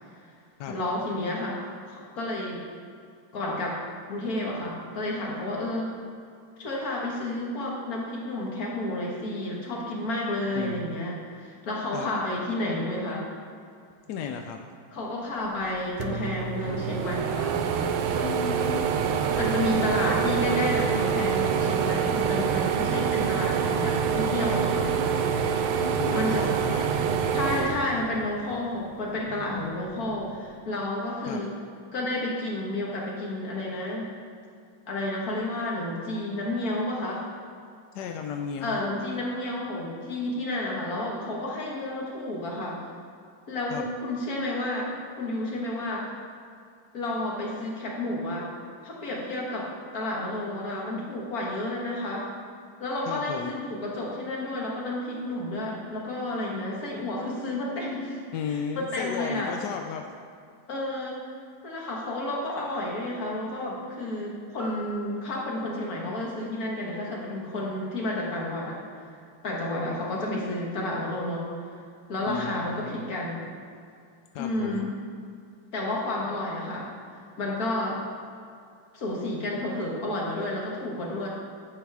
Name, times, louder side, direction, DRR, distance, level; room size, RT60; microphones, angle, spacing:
voice 1, 0.7-2.6 3.3-3.8 4.1-5.9 6.6-13.3 14.9-17.6 19.4-24.9 26.1-26.4 27.3-31.5 31.9-34.1 34.9-37.2 38.6-42.8 43.5-44.9 45.2-46.1 46.9-48.5 48.8-52.3 52.8-58.2 58.5-59.5 60.7-61.2 61.6-69.1 69.4-71.5 72.1-73.4 74.4-74.9 75.7-76.9 77.4-78.0 78.9-81.3, left 1 dB, 50° left, -3 dB, 2.0 m, -31 dB
voice 2, 10.6-11.0 11.9-12.1 14.1-14.6 18.2-18.9 25.8-27.2 31.3-31.4 37.9-38.8 43.7-43.9 53.1-53.5 58.3-60.1 72.3-73.0 74.3-74.9, left 6 dB, 75° left, 4 dB, 1.0 m, -34 dB
sound 1, 15.7-15.8 16.0-28.6 29.0-30.2, right 7 dB, 90° right, 1.5 m, -26 dB
sound 2, 64.6-68.7 69.1-69.2, left 2 dB, 20° right, 1.2 m, -49 dB
10.0 x 7.2 x 3.5 m, 2.4 s
omnidirectional pair, 2.2 m